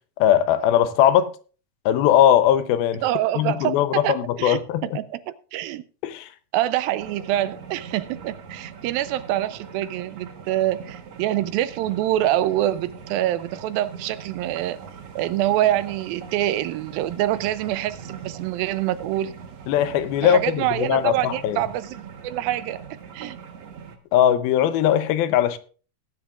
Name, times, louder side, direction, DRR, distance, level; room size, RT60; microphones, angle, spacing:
voice 1, 0.2-1.3 1.9-3.0 3.4-4.9 6.0-6.3 19.7-21.6 24.1-25.6, left 10 dB, 85° left, 2.7 m, -19 dB
voice 2, 3.0-5.8 6.5-14.8 15.2-19.3 20.2-22.8 23.1-23.4, right 13 dB, 85° right, 2.4 m, -25 dB
sound 1, 7.0-24.0, right 6 dB, 55° right, 2.1 m, -41 dB
18.5 x 10.0 x 2.4 m
omnidirectional pair, 4.2 m